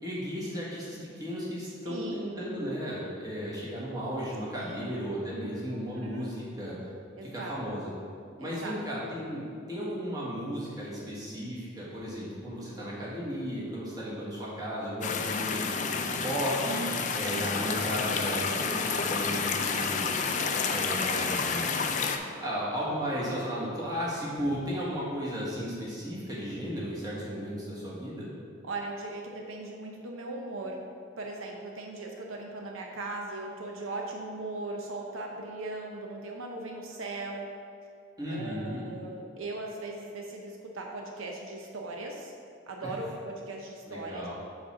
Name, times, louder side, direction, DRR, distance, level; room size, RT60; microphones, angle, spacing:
voice 1, 0.0-6.8 7.2-7.9 8.4-20.2 20.7-21.6 22.3-28.3 38.2-38.8 42.8-42.9 43.9-44.3, equal, 20° right, -7 dB, 1.4 m, -35 dB
voice 2, 1.8-2.4 4.5-4.9 5.9-6.2 7.2-7.6 8.4-8.8 28.6-30.8 31.2-37.5 38.3-42.3 42.7-44.3, right 2 dB, 75° right, 1 dB, 0.7 m, -38 dB
sound 1, 15.0-22.2, left 5 dB, 35° left, 0.3 m, -30 dB
5.2 x 4.2 x 6.0 m, 2.3 s
head